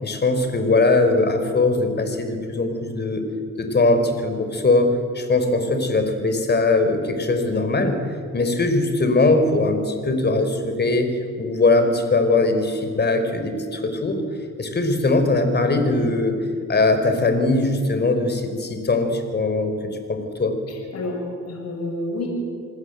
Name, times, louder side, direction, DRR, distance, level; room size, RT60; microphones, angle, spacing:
voice 1, 0.0-3.2 3.6-14.2 14.6-16.4 16.7-19.8 20.1-20.5, left 2 dB, 35° left, 7 dB, 4.4 m, -20 dB
voice 2, 20.7-22.3, left 2 dB, 55° left, 1 dB, 6.5 m, -29 dB
28.0 x 19.5 x 8.1 m, 2.3 s
cardioid pair, 90°, 30 cm